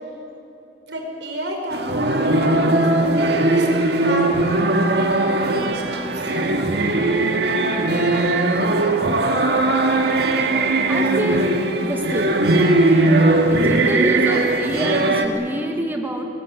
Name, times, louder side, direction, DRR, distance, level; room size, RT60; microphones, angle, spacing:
voice 1, 0.9-4.4 4.7-6.3, equal, 85° right, 1 dB, 5.5 m, -31 dB
sound 1, 1.7-15.3, right 2 dB, 65° right, 2.0 m, -19 dB
voice 2, 10.9-11.5 11.8-12.4 13.5-16.3, right 1 dB, 10° right, 2 dB, 1.7 m, -26 dB
25.5 x 20.5 x 8.0 m, 2.8 s
head